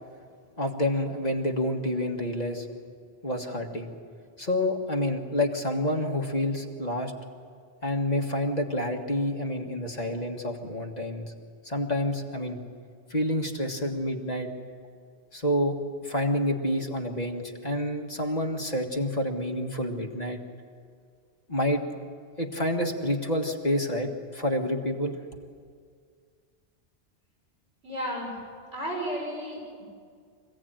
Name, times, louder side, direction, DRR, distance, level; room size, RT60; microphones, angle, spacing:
voice 1, 0.6-2.7 3.2-3.9 4.4-7.1 7.8-11.3 11.7-12.6 13.1-14.5 15.3-15.8 16.0-20.4 21.5-21.8 22.4-25.2, left 1 dB, 35° left, 1 dB, 1.8 m, -28 dB
voice 2, 27.8-28.3 28.7-29.8, equal, 85° right, -3 dB, 6.3 m, -33 dB
25.0 x 16.5 x 8.9 m, 2.1 s
omnidirectional pair, 1.2 m